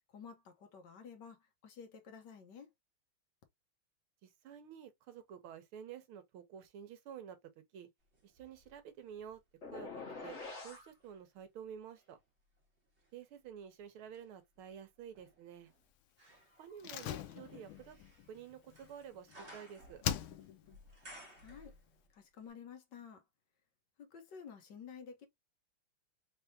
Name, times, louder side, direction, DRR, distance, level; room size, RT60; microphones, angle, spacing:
voice 1, 0.1-2.7 21.4-21.7 22.1-23.2 24.0-25.3, left 6 dB, 60° left, 1.5 m, -52 dB
voice 2, 4.2-7.4 7.7-7.9 8.2-9.4 9.7-12.2 13.1-15.7 16.6-18.0 18.3-20.0, right 8 dB, 80° right, 1.8 m, -50 dB
sound 1, 8.1-10.3 10.9-22.2 22.5-22.6, equal, 35° right, 1.7 m, -60 dB
sound 2, 9.6-10.9, left 3 dB, 35° left, 1.8 m, -45 dB
Slam, 16.8-19.6 20.0-20.8 21.0-21.1, left 11 dB, 80° left, 1.5 m, -41 dB
4.2 x 3.5 x 2.6 m
omnidirectional pair, 2.3 m